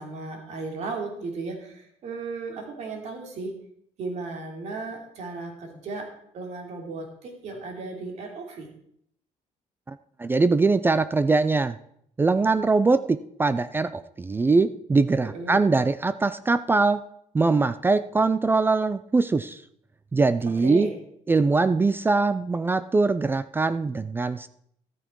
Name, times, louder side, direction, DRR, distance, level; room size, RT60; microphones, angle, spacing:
voice 1, 0.0-3.6 4.0-8.7 15.2-15.6 20.6-20.9, right 3 dB, 60° right, 2 dB, 3.1 m, -35 dB
voice 2, 9.9-11.8 12.2-17.0 17.3-19.6 20.1-20.9 21.3-24.5, right 3 dB, 15° right, 14 dB, 0.4 m, -22 dB
13.5 x 9.0 x 4.6 m, 0.69 s
cardioid pair, 135°, 13 cm